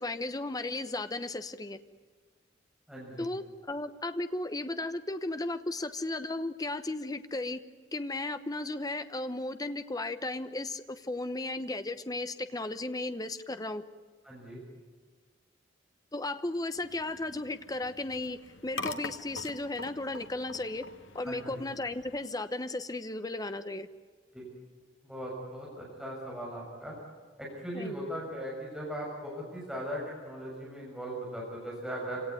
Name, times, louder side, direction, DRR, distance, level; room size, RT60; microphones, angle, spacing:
voice 1, 0.0-1.8 3.2-7.6 7.9-13.8 16.1-20.9 21.1-23.9 27.7-27.9, left 2 dB, 20° left, 10 dB, 1.0 m, -35 dB
voice 2, 2.9-3.3 14.2-14.6 21.2-21.6 24.3-24.5 25.0-27.0 27.4-32.2, equal, 5° right, -4 dB, 6.6 m, -39 dB
sound 1, 16.7-22.2, left 3 dB, 85° left, 1.6 m, -44 dB
27.5 x 18.0 x 9.5 m, 1.5 s
head